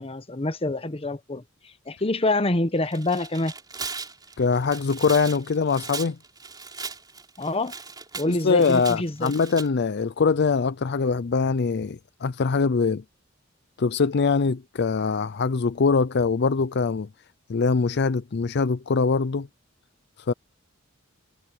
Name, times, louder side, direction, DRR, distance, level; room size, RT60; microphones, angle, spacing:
voice 1, 0.0-3.5 7.4-7.8 8.1-9.3, left 2 dB, 30° left, 1.2 m, -26 dB
Tearing, 2.8-9.7, right 4 dB, 20° right, 3.9 m, -38 dB
voice 2, 4.4-6.2 8.3-13.0 13.8-17.1 17.5-19.5 20.3-20.4, left 4 dB, 55° left, 0.5 m, -23 dB
head